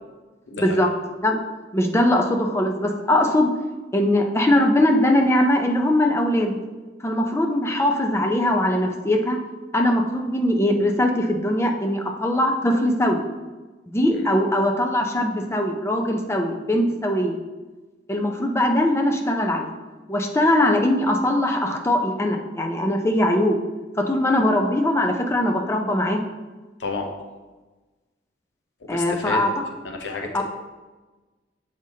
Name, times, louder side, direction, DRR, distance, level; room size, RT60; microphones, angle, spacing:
voice 1, 0.5-0.8 14.1-14.3 26.8-27.1 28.8-29.5 29.8-30.4, left 3 dB, 85° left, 2 dB, 0.8 m, -31 dB
voice 2, 1.7-3.5 3.9-6.6 7.0-9.4 9.7-13.2 13.9-17.4 18.1-19.7 20.1-23.6 24.1-26.2 28.9-29.5 30.3-30.4, left 1 dB, 15° left, 3 dB, 0.5 m, -21 dB
7.8 x 5.0 x 2.8 m, 1.2 s
head